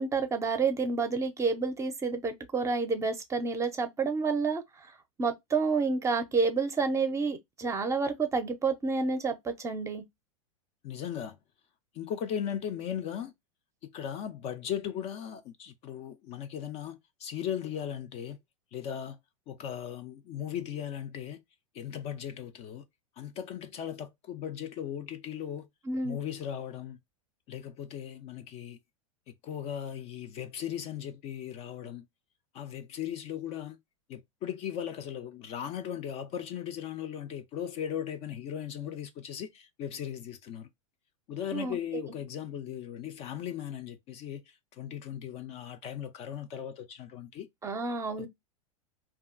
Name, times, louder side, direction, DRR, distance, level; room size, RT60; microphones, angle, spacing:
voice 1, 0.0-4.6 5.2-10.0 25.9-26.2 41.5-42.0 47.6-48.3, right 4 dB, 15° right, 0.5 m, -29 dB
voice 2, 10.8-11.4 11.9-13.3 13.8-18.4 18.7-19.2 19.5-21.4 21.7-22.8 23.2-25.7 26.0-27.0 27.5-28.8 29.3-32.1 32.5-33.8 34.1-40.7 41.3-47.5 48.2-48.3, left 9 dB, 35° left, 0.4 m, -37 dB
2.7 x 2.3 x 2.4 m
hypercardioid pair, 100°, 18 cm